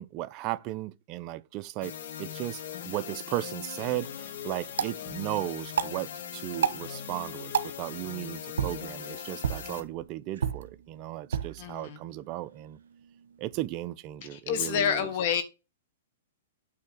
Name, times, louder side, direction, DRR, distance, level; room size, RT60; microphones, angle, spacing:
voice 1, 0.0-12.8 13.4-15.1, right 15 dB, 30° right, 0.5 m, -36 dB
sound 1, 1.8-9.8, left 8 dB, 65° left, 1.7 m, -40 dB
sound 2, 3.6-13.7, right 7 dB, 80° right, 1.1 m, -36 dB
voice 2, 11.6-12.0 14.3-15.4, left 8 dB, 45° left, 1.6 m, -29 dB
8.6 x 3.4 x 6.4 m
hypercardioid pair, 150°, 0 cm